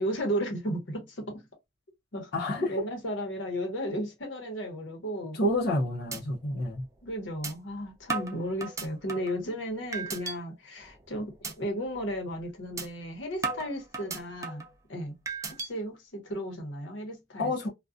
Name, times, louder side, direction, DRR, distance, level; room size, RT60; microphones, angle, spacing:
voice 1, 0.0-1.4 2.1-2.3 2.7-5.4 7.0-14.6 14.9-15.2 15.6-17.7, equal, 85° left, 0.9 m, -34 dB
voice 2, 2.3-2.7 5.3-6.8 17.4-17.7, left 1 dB, 60° left, 0.6 m, -28 dB
sound 1, 5.4-5.7 6.1-6.2 6.6-6.7 7.4-7.5 8.1-9.4 9.9-10.4 10.8-11.0 11.4-11.5 11.9-12.1 12.8-12.9 13.4-14.7 15.3-15.7, right 4 dB, 15° right, 0.4 m, -35 dB
2.4 x 2.2 x 2.4 m
head